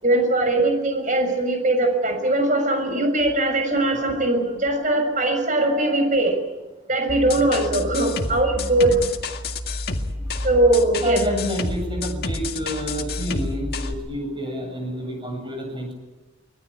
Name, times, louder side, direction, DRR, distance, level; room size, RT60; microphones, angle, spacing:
voice 1, 0.0-6.4 6.9-9.0 10.4-11.2, right 2 dB, 40° right, 5 dB, 6.3 m, -20 dB
sound 1, 7.1-13.9, left 2 dB, 50° left, 2.0 m, -29 dB
voice 2, 11.0-15.9, equal, 25° right, 3 dB, 7.9 m, -29 dB
25.5 x 20.0 x 8.7 m, 1.1 s
head